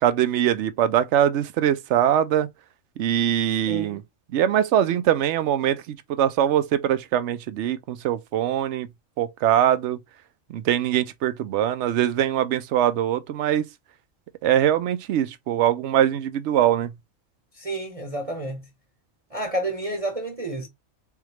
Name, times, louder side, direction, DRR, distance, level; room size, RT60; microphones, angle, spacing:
voice 1, 0.0-2.5 3.0-4.0 4.3-8.9 9.2-10.0 10.5-13.7 14.4-16.9, right 11 dB, 70° right, 0.9 m, -22 dB
voice 2, 3.7-4.0 17.6-18.7 19.3-20.7, right 1 dB, 30° right, 0.9 m, -30 dB
3.7 x 3.5 x 3.0 m
omnidirectional pair, 1.3 m